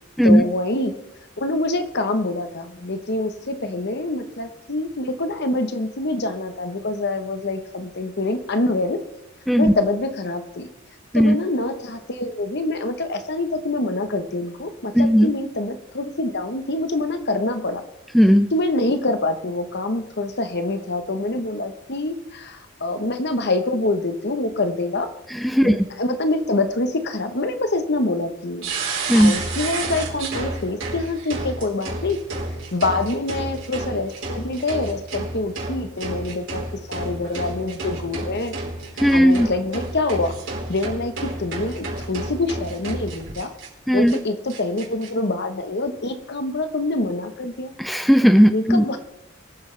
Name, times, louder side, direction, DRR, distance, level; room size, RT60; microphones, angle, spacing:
voice 1, 0.2-0.9 1.4-9.0 9.6-10.7 11.1-17.8 18.5-25.1 25.6-28.7 29.1-32.2 32.7-38.5 39.1-40.3 40.7-43.5 43.9-47.7 48.5-49.0, left 2 dB, 55° left, 8 dB, 1.2 m, -25 dB
voice 2, 14.9-15.3 18.1-18.5 25.4-25.9 29.1-29.3 39.0-39.5 43.9-44.2 47.8-48.8, equal, ahead, 9 dB, 0.5 m, -15 dB
sound 1, 28.6-43.7 44.1-44.2 44.5-45.1, right 2 dB, 65° right, 4.3 m, -31 dB
24.0 x 8.9 x 3.4 m, 0.87 s
head